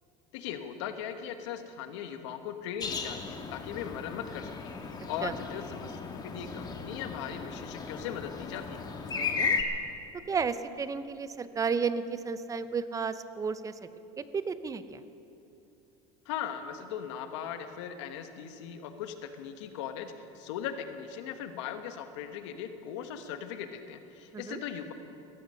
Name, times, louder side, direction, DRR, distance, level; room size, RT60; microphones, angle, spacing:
voice 1, 0.3-8.8 16.2-24.9, left 9 dB, 85° left, 7 dB, 1.4 m, -39 dB
sound 1, 2.8-9.6, left 5 dB, 30° left, 1.6 m, -35 dB
voice 2, 9.1-9.6 10.3-13.8 14.2-15.0 24.3-24.6, right 5 dB, 20° right, 12 dB, 0.7 m, -33 dB
17.0 x 15.0 x 5.6 m, 2.9 s
supercardioid pair, 120°, 15 cm